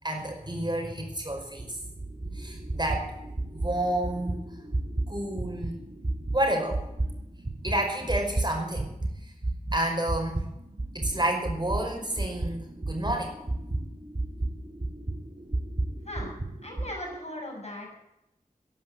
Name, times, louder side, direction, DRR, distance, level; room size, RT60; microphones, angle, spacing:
voice 1, 0.0-1.8 2.3-3.1 3.5-4.5 5.1-5.8 6.3-6.8 7.6-8.9 9.2-9.3 9.7-10.5 10.9-13.4, right 1 dB, 30° right, 1 dB, 5.1 m, -30 dB
sound 1, 1.1-9.1 9.4-16.9, right 2 dB, 55° right, 2.5 m, -33 dB
voice 2, 16.6-18.0, left 1 dB, 50° left, 1 dB, 6.3 m, -38 dB
13.5 x 11.0 x 7.8 m, 0.84 s
wide cardioid pair, 40°, 14 cm